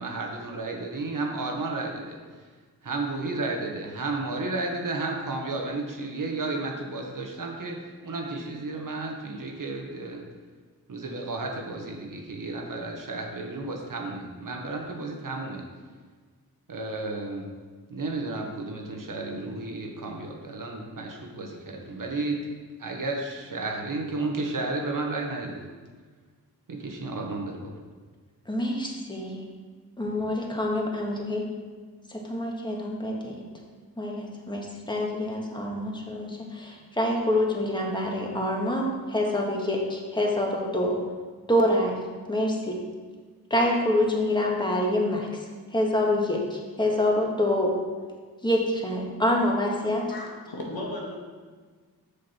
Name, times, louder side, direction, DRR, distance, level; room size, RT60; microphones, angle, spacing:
voice 1, 0.0-2.2 2.8-10.2 10.9-15.6 16.7-17.5 17.9-22.4 22.8-25.6 26.7-27.6, right 3 dB, 60° right, 1 dB, 1.4 m, -32 dB
voice 2, 28.5-29.5 30.0-31.5 32.1-33.4 34.0-41.0 41.5-41.9 42.3-42.8 43.5-45.3 45.7-47.7 48.4-50.0, left 1 dB, 10° left, -1 dB, 1.7 m, -26 dB
voice 3, 50.1-51.1, left 1 dB, 75° left, -2 dB, 1.8 m, -35 dB
6.6 x 6.4 x 4.4 m, 1.5 s
cardioid pair, 55°, 37 cm